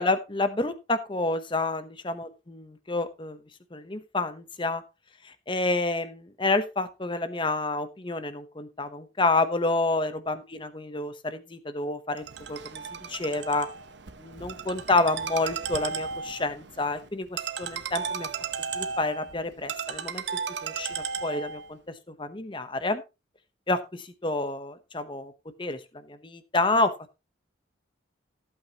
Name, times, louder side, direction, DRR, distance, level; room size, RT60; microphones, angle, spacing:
voice 1, 0.0-3.4 3.7-4.8 5.2-13.7 14.2-18.3 18.7-20.2 20.6-23.0 23.7-25.3 25.6-27.2, left 2 dB, 25° left, 11 dB, 0.9 m, -29 dB
Ringtone, 12.2-21.7, right 6 dB, 65° right, 1.0 m, -35 dB
15.0 x 8.4 x 3.0 m, 0.27 s
head